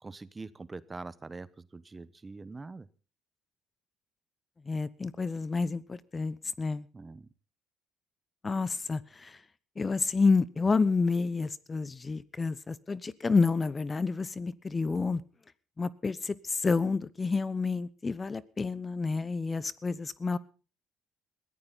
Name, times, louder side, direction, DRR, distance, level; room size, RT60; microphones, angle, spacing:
voice 1, 0.0-2.9 6.9-7.3, right 3 dB, 25° right, 17 dB, 0.9 m, -44 dB
voice 2, 4.7-6.9 8.4-9.4 9.8-15.2 15.8-20.4, left 4 dB, 25° left, 18 dB, 0.9 m, -29 dB
21.5 x 14.5 x 4.0 m, 0.36 s
supercardioid pair, 75°, 0 cm